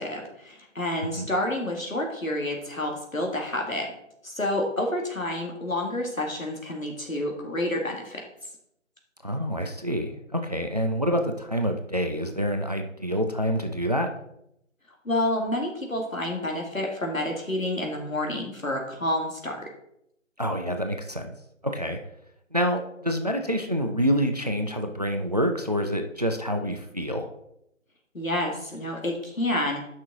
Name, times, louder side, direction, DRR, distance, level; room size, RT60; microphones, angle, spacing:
voice 1, 0.0-3.9 4.2-8.2 15.1-19.7 28.1-29.9, left 1 dB, 90° left, 1 dB, 2.1 m, -29 dB
voice 2, 9.2-14.1 20.4-21.3 21.6-22.0 22.5-27.3, equal, 30° right, 5 dB, 0.5 m, -27 dB
7.3 x 5.9 x 3.6 m, 0.78 s
figure-of-eight pair, 150°, 39 cm